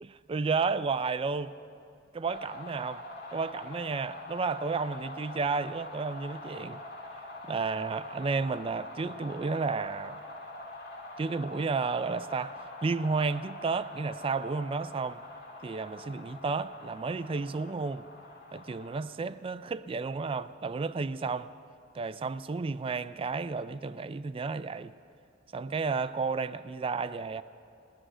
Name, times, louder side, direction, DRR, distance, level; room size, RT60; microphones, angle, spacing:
voice 1, 0.3-1.5 2.1-3.0 3.3-6.8 7.5-10.2 11.2-12.6 12.8-15.2 15.6-18.0 18.5-21.5 21.9-24.9 25.5-27.4, right 4 dB, 25° right, 0.3 m, -32 dB
sound 1, 2.2-19.0, left 2 dB, 55° left, 2.1 m, -44 dB
18.5 x 6.3 x 10.0 m
head